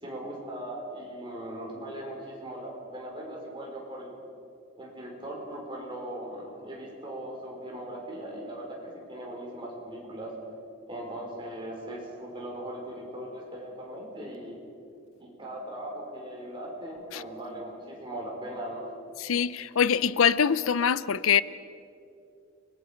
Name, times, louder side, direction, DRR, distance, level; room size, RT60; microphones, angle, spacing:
voice 1, 0.0-4.2 4.8-10.3 10.9-14.6 15.2-18.9, right 1 dB, 25° right, 4.9 m, -39 dB
voice 2, 19.2-21.4, left 7 dB, 90° left, 0.5 m, -24 dB
29.5 x 21.5 x 5.2 m
head